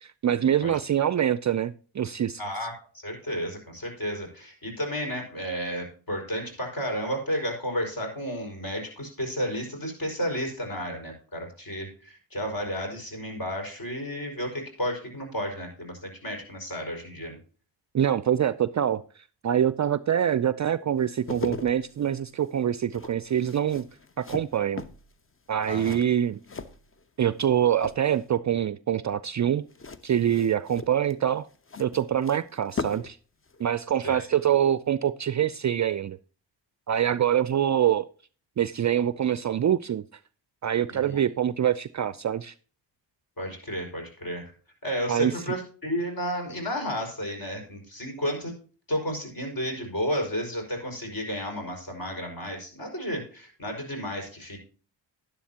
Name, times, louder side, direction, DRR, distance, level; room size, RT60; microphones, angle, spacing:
voice 1, 0.0-2.4 17.9-23.8 24.2-24.8 25.5-26.4 27.2-29.6 30.0-31.5 31.8-33.2 33.6-36.2 36.9-38.1 38.6-40.0 40.6-42.5 45.1-45.3, right 9 dB, 40° right, 0.5 m, -25 dB
voice 2, 2.4-17.4 25.7-26.0 34.0-34.3 40.9-41.2 43.4-44.4 44.8-48.5 48.9-54.6, equal, 45° left, 5.4 m, -32 dB
sound 1, 21.0-27.5 27.7-28.4 29.7-33.2 33.5-33.6, left 4 dB, 25° left, 0.9 m, -39 dB
11.5 x 10.5 x 2.9 m
supercardioid pair, 45°, 49 cm